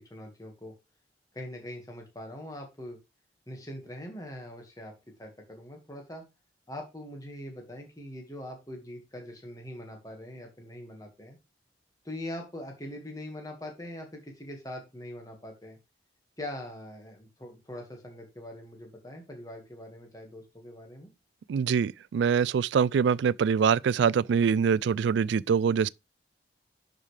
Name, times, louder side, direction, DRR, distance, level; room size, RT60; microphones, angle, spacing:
voice 1, 0.1-0.7 1.3-3.0 3.5-4.9 5.2-6.2 6.7-11.4 12.0-15.8 16.4-21.1, left 1 dB, 20° left, 1.7 m, -42 dB
voice 2, 21.5-25.9, right 6 dB, 80° right, 0.3 m, -24 dB
11.0 x 5.2 x 3.3 m
head